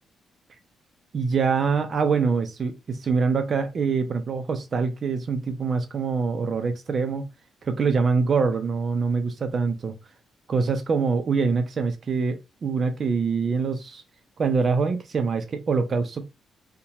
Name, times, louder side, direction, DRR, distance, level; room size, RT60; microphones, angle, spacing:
voice 1, 1.1-7.3 7.6-9.9 10.5-14.0 14.4-16.2, right 5 dB, 35° right, 0.4 m, -24 dB
2.9 x 2.2 x 4.0 m
cardioid pair, 155°, 0 cm